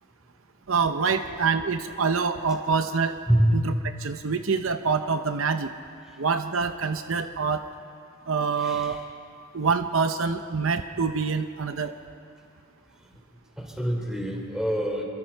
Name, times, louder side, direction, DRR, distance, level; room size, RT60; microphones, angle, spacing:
voice 1, 0.7-3.1 3.5-3.7 4.0-5.7 6.2-7.6 8.3-9.0 9.5-11.9, right 5 dB, 70° right, 8 dB, 0.7 m, -26 dB
voice 2, 8.6-9.0 13.6-15.0, right 1 dB, 5° right, 0 dB, 3.5 m, -25 dB
28.0 x 23.0 x 4.6 m, 2.5 s
head